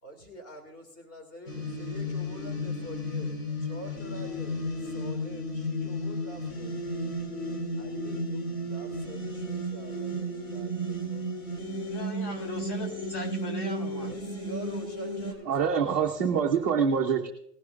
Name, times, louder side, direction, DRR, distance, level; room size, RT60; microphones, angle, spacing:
voice 1, 0.0-6.8 7.7-8.4 8.7-11.2 12.2-12.4 14.0-15.9, right 1 dB, 20° left, 4 dB, 2.1 m, -46 dB
sound 1, 1.5-15.3, equal, 75° left, 4.3 m, -33 dB
voice 2, 11.9-14.1, left 1 dB, 45° left, 3 dB, 4.1 m, -38 dB
voice 3, 15.4-17.3, right 6 dB, 15° right, -5 dB, 0.4 m, -25 dB
19.5 x 11.5 x 2.4 m, 0.73 s
hypercardioid pair, 150°, 47 cm